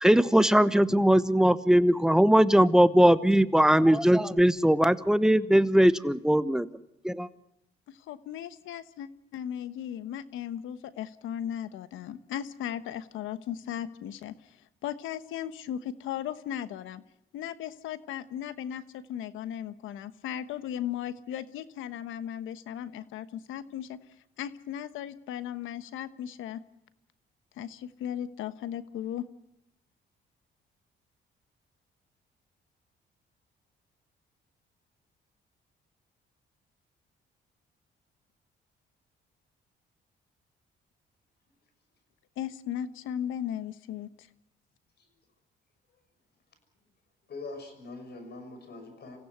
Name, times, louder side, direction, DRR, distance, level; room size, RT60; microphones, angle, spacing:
voice 1, 0.0-6.7 7.0-7.3, equal, 5° right, 13 dB, 1.0 m, -20 dB
voice 2, 7.9-17.0 17.3-24.0 24.4-26.6 27.6-29.2 42.4-44.3, left 10 dB, 90° left, 13 dB, 1.2 m, -37 dB
voice 3, 47.3-49.2, left 3 dB, 55° left, 7 dB, 6.3 m, -43 dB
27.5 x 15.5 x 8.1 m, 0.83 s
cardioid pair, 90°, 20 cm